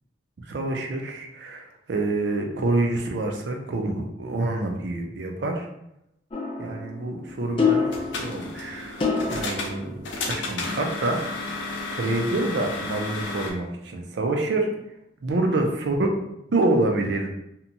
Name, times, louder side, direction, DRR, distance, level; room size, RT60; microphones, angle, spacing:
voice 1, 0.5-5.7 6.6-7.9 8.1-9.0 9.3-11.6 11.9-14.7 15.2-15.9 16.5-17.3, right 2 dB, 70° right, 2 dB, 0.4 m, -27 dB
sound 1, 6.3-10.8, left 5 dB, 30° left, 0.4 m, -28 dB
sound 2, 7.7-13.5, left 3 dB, 85° left, 0.5 m, -32 dB
2.8 x 2.2 x 2.6 m, 0.83 s
head